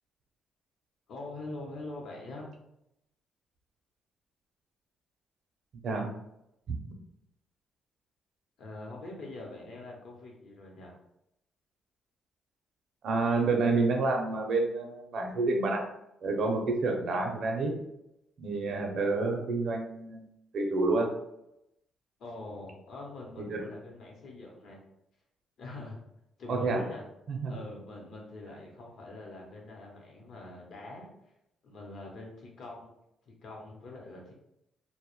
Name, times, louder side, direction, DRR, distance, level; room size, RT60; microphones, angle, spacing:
voice 1, 1.1-2.5 8.6-11.0 22.2-24.8 25.6-26.0 26.4-27.0 27.5-31.1 31.6-32.9 33.3-34.3, left 2 dB, 65° left, -1 dB, 0.8 m, -44 dB
voice 2, 13.0-15.8 16.2-17.7 18.4-20.2 20.5-21.1 23.4-23.7 26.5-26.8 27.3-27.5, right 3 dB, 65° right, 1 dB, 0.5 m, -28 dB
2.1 x 2.0 x 3.0 m, 0.82 s
cardioid pair, 90°, 0 cm